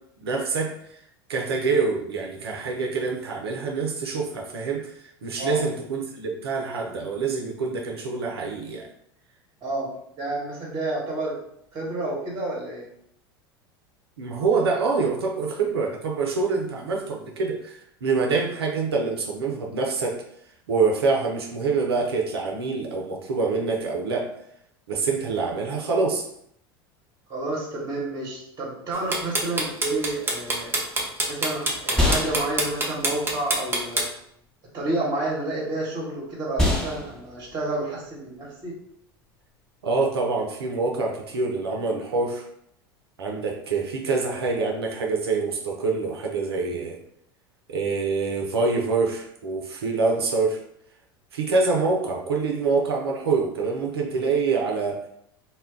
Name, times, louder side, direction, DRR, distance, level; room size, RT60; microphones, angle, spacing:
voice 1, 0.2-8.9 14.2-20.2 20.7-24.3 24.9-26.3 39.8-42.4 43.2-47.0 47.7-50.6 51.3-55.0, right 4 dB, 80° right, 0 dB, 0.5 m, -26 dB
voice 2, 10.2-11.3 11.7-12.9 27.3-30.7 31.3-34.1 34.7-38.7, right 2 dB, 35° right, -4 dB, 1.1 m, -30 dB
sound 1, 28.9-34.0, right 2 dB, 15° right, 0.7 m, -24 dB
sound 2, 30.9-40.2, left 2 dB, 5° left, 0.9 m, -30 dB
2.2 x 2.1 x 3.6 m, 0.73 s
hypercardioid pair, 80°, 13 cm